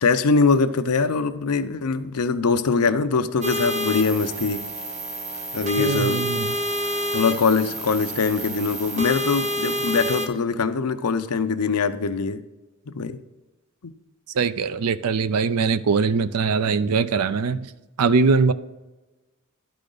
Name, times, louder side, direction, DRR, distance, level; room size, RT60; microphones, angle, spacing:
voice 1, 0.0-4.6 5.5-6.2 7.1-12.4 12.9-13.2 13.8-13.9, left 4 dB, 90° left, 10 dB, 0.6 m, -22 dB
sound 1, 3.4-10.3, equal, 30° right, 0.8 m, -28 dB
voice 2, 5.8-6.6 14.3-17.7 18.0-18.5, right 4 dB, 85° right, 14 dB, 0.5 m, -21 dB
11.5 x 5.0 x 3.9 m, 1.1 s
head